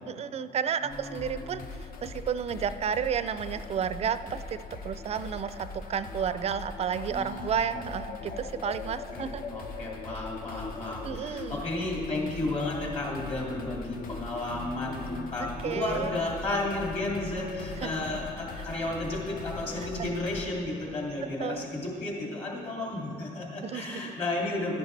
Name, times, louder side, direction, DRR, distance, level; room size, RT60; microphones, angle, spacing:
voice 1, 0.1-1.6 2.0-9.4 11.0-11.6 15.6-16.1 17.8-17.9 20.0-20.1 21.4-21.7 23.6-24.1, right 7 dB, 40° right, 13 dB, 0.4 m, -32 dB
voice 2, 0.8-1.6 7.1-7.9 9.1-24.8, left 2 dB, 40° left, -3 dB, 2.7 m, -33 dB
sound 1, 0.9-20.5, left 4 dB, 60° left, 0.8 m, -40 dB
12.0 x 10.5 x 3.3 m, 2.9 s
cardioid pair, 110°, 17 cm